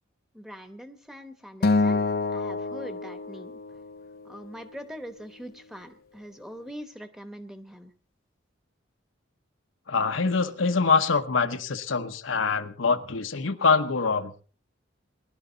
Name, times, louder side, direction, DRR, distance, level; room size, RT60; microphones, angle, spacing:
voice 1, 0.3-2.0 2.3-3.8 4.2-7.9, equal, ahead, 9 dB, 1.1 m, -43 dB
Acoustic guitar, 1.6-4.0, left 3 dB, 50° left, 0.7 m, -26 dB
voice 2, 9.9-14.3, left 4 dB, 80° left, 8 dB, 1.0 m, -24 dB
20.5 x 11.5 x 3.9 m, 0.39 s
head